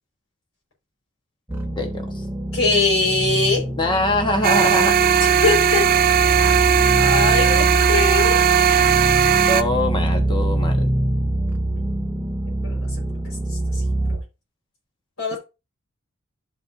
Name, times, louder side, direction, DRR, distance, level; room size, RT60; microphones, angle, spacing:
sound 1, 1.5-14.2, right 1 dB, 10° right, 1.1 m, -24 dB
voice 1, 1.8-2.2 3.8-5.0 9.5-10.9 15.3-15.4, left 1 dB, 25° left, 4 dB, 1.1 m, -23 dB
voice 2, 2.5-3.6 5.4-5.9 7.0-8.4 12.6-12.9 15.2-15.4, left 3 dB, 70° left, -2 dB, 4.6 m, -21 dB
sound 2, 4.4-9.6, right 8 dB, 45° right, 0.4 m, -17 dB
12.0 x 4.3 x 2.6 m, 0.28 s
head